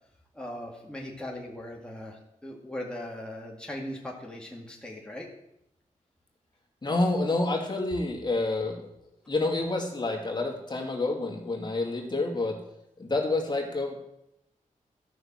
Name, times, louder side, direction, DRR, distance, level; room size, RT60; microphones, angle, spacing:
voice 1, 0.4-5.3, left 1 dB, 5° left, -2 dB, 2.1 m, -39 dB
voice 2, 6.8-8.9 9.3-12.6 13.0-14.0, left 2 dB, 30° left, -1 dB, 2.3 m, -28 dB
13.0 x 6.0 x 7.4 m, 0.82 s
wide cardioid pair, 80°, 14 cm